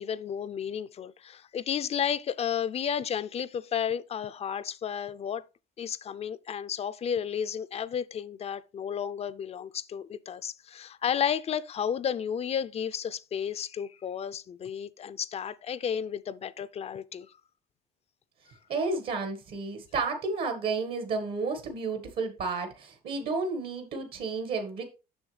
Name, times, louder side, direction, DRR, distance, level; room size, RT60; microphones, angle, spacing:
voice 1, 0.0-5.4 5.8-17.3, left 8 dB, 40° left, 0.4 m, -32 dB
voice 2, 18.7-24.8, right 4 dB, 65° right, 1.5 m, -31 dB
7.1 x 6.2 x 3.2 m
cardioid pair, 110°, 17 cm